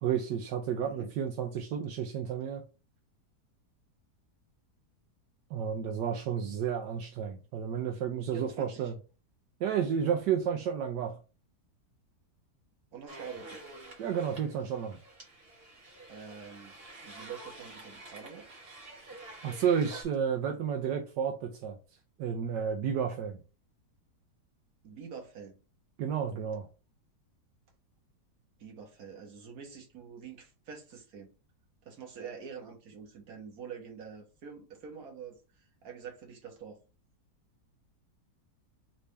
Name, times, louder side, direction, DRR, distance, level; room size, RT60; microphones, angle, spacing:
voice 1, 0.0-2.6 5.5-8.9 9.6-11.2 14.0-15.0 19.4-21.8 22.2-23.4 26.0-26.7, right 8 dB, 85° right, 1.3 m, -31 dB
voice 2, 8.3-8.9 12.9-13.6 16.1-16.8 17.0-18.5 24.8-25.6 28.6-31.3 31.8-36.8, right 6 dB, 60° right, 1.6 m, -46 dB
sound 1, 13.1-20.0, right 2 dB, 35° right, 1.5 m, -49 dB
4.2 x 3.3 x 3.2 m
omnidirectional pair, 1.8 m